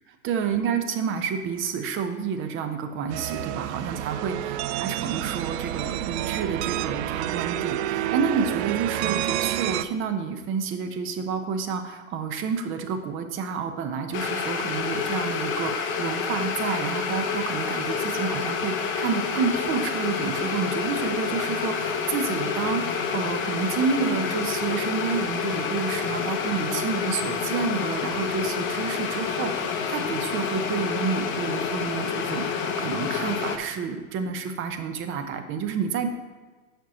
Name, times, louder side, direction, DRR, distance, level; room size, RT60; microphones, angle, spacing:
voice 1, 0.2-36.1, right 6 dB, 30° right, 7 dB, 0.8 m, -29 dB
sound 1, 3.1-9.8, right 13 dB, 55° right, 0.4 m, -29 dB
sound 2, 14.1-33.6, left 6 dB, 30° left, 0.8 m, -28 dB
7.5 x 5.4 x 4.2 m, 1.4 s
hypercardioid pair, 115°, 41 cm